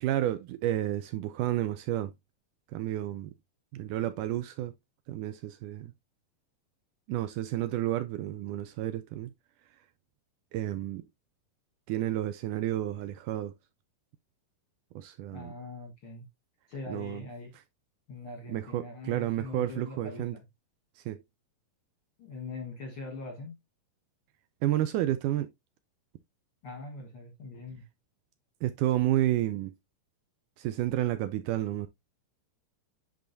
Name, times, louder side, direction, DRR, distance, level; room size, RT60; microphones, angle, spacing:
voice 1, 0.0-2.1 2.7-3.3 3.7-4.7 5.1-5.9 7.1-9.3 10.5-11.1 11.9-13.5 15.0-15.5 16.9-17.2 18.5-20.3 21.0-21.2 24.6-25.5 28.6-29.7 30.6-31.9, right 13 dB, 80° right, 1.9 m, -31 dB
voice 2, 15.3-16.3 16.7-17.5 18.1-20.4 22.2-23.6 26.6-27.9, left 3 dB, 60° left, 1.4 m, -42 dB
10.0 x 3.9 x 2.6 m
omnidirectional pair, 4.0 m